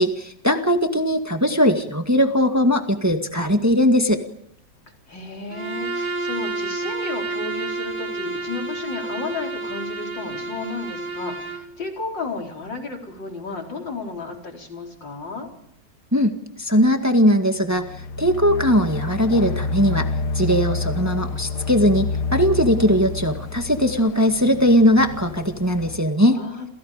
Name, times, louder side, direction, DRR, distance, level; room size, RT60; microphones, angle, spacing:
voice 1, 0.0-4.2 16.1-16.3 16.6-17.8 18.2-20.1 20.3-26.4, equal, 10° right, 5 dB, 1.8 m, -19 dB
voice 2, 5.1-15.5 26.4-26.7, left 3 dB, 85° left, 1 dB, 5.1 m, -33 dB
Bowed string instrument, 5.5-11.7, right 2 dB, 70° right, 3.7 m, -30 dB
sound 1, 17.7-26.0, left 4 dB, 65° left, 1.8 m, -28 dB
29.5 x 28.0 x 5.2 m, 0.72 s
omnidirectional pair, 1.9 m